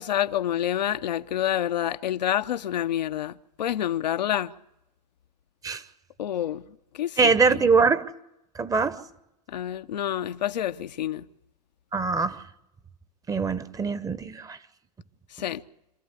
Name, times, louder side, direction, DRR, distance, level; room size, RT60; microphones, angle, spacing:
voice 1, 0.0-4.5 6.2-6.6 7.0-7.3 9.5-11.2 15.4-15.6, left 11 dB, 80° left, 0.8 m, -28 dB
voice 2, 7.2-8.1 8.6-9.0 11.9-12.4 13.3-14.6, right 4 dB, 15° right, 1.0 m, -23 dB
26.5 x 13.5 x 8.2 m
hypercardioid pair, 110°, 21 cm